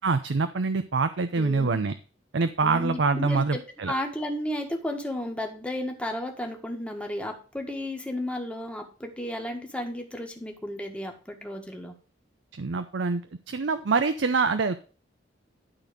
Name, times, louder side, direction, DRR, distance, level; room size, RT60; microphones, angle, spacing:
voice 1, 0.0-1.9 2.3-3.9 12.6-13.2 13.5-14.8, right 4 dB, 70° right, 10 dB, 0.6 m, -25 dB
voice 2, 1.4-1.9 2.6-11.9, left 1 dB, 5° left, 3 dB, 1.6 m, -33 dB
11.5 x 4.2 x 5.1 m, 0.37 s
head